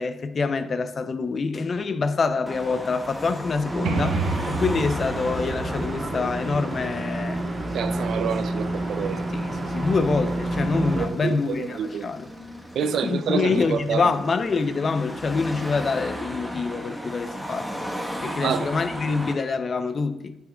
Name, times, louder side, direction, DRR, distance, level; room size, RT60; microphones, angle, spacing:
voice 1, 0.0-7.5 9.3-12.3 12.8-17.9 18.2-20.4, left 4 dB, 40° left, 0.6 m, -26 dB
Car passing by / Traffic noise roadway noise / Engine, 2.5-19.3, equal, ahead, 1.1 m, -37 dB
sound 1, 3.6-11.1, right 1 dB, 35° right, 2.0 m, -29 dB
sound 2, 3.8-7.5, right 4 dB, 85° right, 0.9 m, -31 dB
voice 2, 7.7-9.3 11.0-12.1 12.7-14.1 17.5-17.6 18.3-18.7, right 7 dB, 65° right, 0.4 m, -28 dB
9.3 x 8.5 x 2.3 m
cardioid pair, 90°, 0 cm